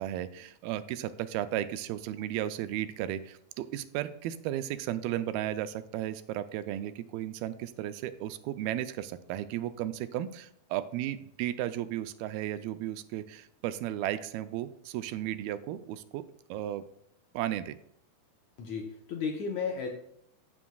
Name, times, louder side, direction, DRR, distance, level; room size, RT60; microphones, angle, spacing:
voice 1, 0.0-16.2 16.5-16.8 17.3-17.8, right 12 dB, 85° right, 11 dB, 2.4 m, -34 dB
voice 2, 18.6-19.9, left 5 dB, 70° left, 1 dB, 1.8 m, -33 dB
15.5 x 6.1 x 2.3 m, 0.72 s
omnidirectional pair, 4.3 m